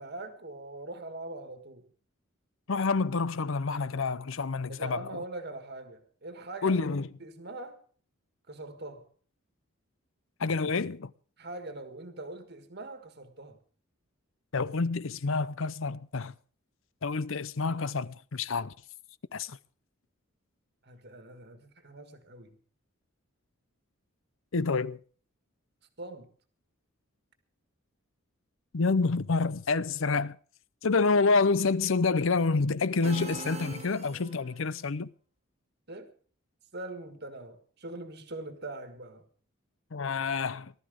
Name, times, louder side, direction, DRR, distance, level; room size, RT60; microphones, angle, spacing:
voice 1, 0.0-1.9 4.7-6.8 7.2-7.8 8.5-9.1 11.4-13.6 20.8-22.5 26.0-26.3 35.9-36.1 36.7-39.2, right 2 dB, 50° right, 1.7 m, -42 dB
voice 2, 2.7-5.0 6.6-7.1 10.4-11.1 14.5-16.3 17.0-18.7 19.3-19.6 24.5-25.0 28.7-30.4 30.8-35.1 39.9-40.7, left 4 dB, 65° left, 0.7 m, -28 dB
sound 1, 33.0-34.6, right 4 dB, 30° right, 1.4 m, -42 dB
18.5 x 12.5 x 5.1 m
head